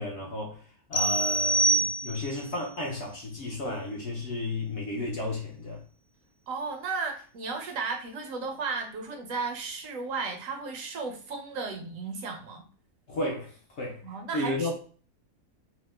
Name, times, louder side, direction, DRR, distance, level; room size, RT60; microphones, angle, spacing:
voice 1, 0.0-5.8 13.1-14.0 14.3-14.7, left 2 dB, 60° left, 0.8 m, -33 dB
sound 1, 0.9-2.5, right 2 dB, 85° left, 0.4 m, -25 dB
voice 2, 6.5-12.6 14.0-14.7, right 4 dB, 70° right, 0.9 m, -34 dB
2.8 x 2.1 x 3.2 m
omnidirectional pair, 1.6 m